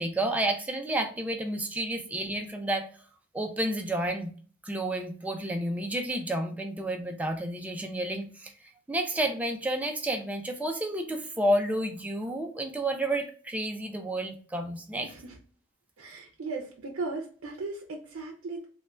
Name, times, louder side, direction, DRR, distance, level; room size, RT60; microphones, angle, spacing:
voice 1, 0.0-2.9 3.3-4.3 4.6-8.5 8.9-15.1, right 1 dB, 5° right, 4 dB, 0.3 m, -30 dB
voice 2, 15.0-15.4 16.0-18.7, right 3 dB, 80° right, 0 dB, 0.5 m, -37 dB
3.2 x 2.2 x 2.3 m, 0.44 s
head